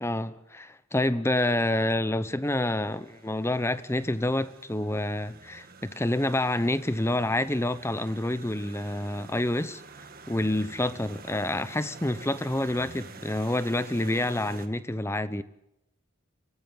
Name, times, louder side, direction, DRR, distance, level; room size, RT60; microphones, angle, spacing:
voice 1, 0.0-9.8 10.3-15.4, left 1 dB, 10° left, 0.8 m, -28 dB
sound 1, 2.4-14.7, right 4 dB, 40° right, 1.7 m, -48 dB
23.5 x 18.5 x 7.3 m
head